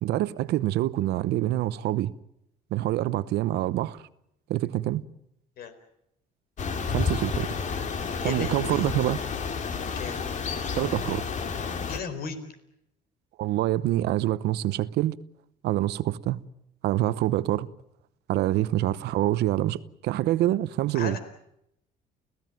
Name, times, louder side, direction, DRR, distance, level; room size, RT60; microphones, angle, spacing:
voice 1, 0.0-2.1 2.7-4.0 4.5-5.0 6.9-7.6 8.2-9.2 10.7-11.2 13.4-15.2 15.6-16.4 16.8-17.7 18.3-21.2, right 14 dB, 80° right, 0.9 m, -26 dB
sound 1, 6.6-12.0, left 5 dB, 45° left, 2.5 m, -30 dB
voice 2, 8.2-8.9 9.9-10.2 11.9-12.4 20.9-21.2, left 5 dB, 65° left, 4.4 m, -35 dB
29.5 x 16.5 x 9.2 m
cardioid pair, 110°, 17 cm